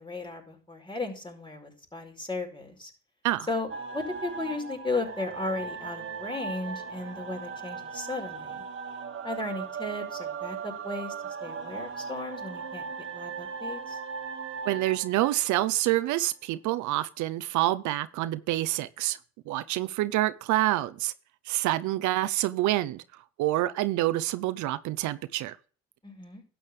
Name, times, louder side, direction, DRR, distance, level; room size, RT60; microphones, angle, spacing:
voice 1, 0.0-2.9 3.5-8.6 9.2-14.0 26.0-26.4, left 2 dB, 15° left, 4.9 m, -35 dB
sound 1, 3.7-16.3, right 6 dB, 45° right, 1.8 m, -38 dB
voice 2, 14.7-19.2 19.5-21.1 21.5-23.0 23.4-25.6, right 16 dB, 90° right, 0.7 m, -27 dB
12.0 x 8.7 x 3.2 m
cardioid pair, 80°, 29 cm